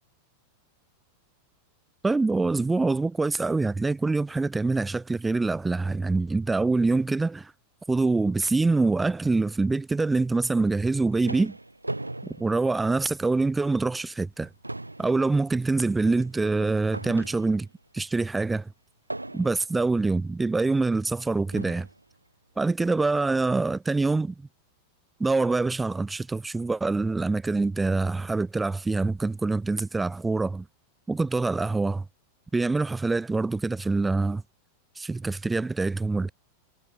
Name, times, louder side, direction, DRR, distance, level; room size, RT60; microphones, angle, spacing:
voice 1, 2.0-7.5 7.9-11.5 12.4-14.5 15.0-17.7 17.9-18.7 19.3-21.9 22.6-24.5 25.2-30.7 31.1-32.1 32.5-34.4 35.0-36.3, right 3 dB, 10° right, 2.0 m, -25 dB
sound 1, 10.9-13.4 13.8-14.0 14.3-17.8 19.1-19.8 20.7-20.8 21.5-22.0, right 2 dB, 85° right, 2.2 m, -39 dB
figure-of-eight pair, 90°, 0 cm